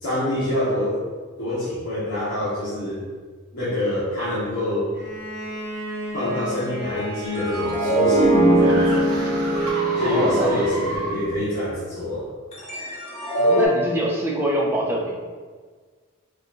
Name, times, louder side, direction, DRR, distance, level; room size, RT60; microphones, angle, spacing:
voice 1, 0.0-1.0 1.4-3.0 3.5-4.9 6.1-8.9 10.0-12.2, left 1 dB, 60° left, -12 dB, 1.0 m, -26 dB
Bowed string instrument, 4.9-10.1, left 1 dB, 50° right, 0.8 m, -31 dB
sound 1, 7.1-11.4, right 2 dB, 85° right, 0.7 m, -33 dB
sound 2, 7.3-11.5 12.5-13.7, right 1 dB, 30° left, 0.7 m, -21 dB
voice 2, 9.9-10.5 13.4-15.2, right 1 dB, 10° right, -3 dB, 0.4 m, -25 dB
4.5 x 2.5 x 2.3 m, 1.5 s
head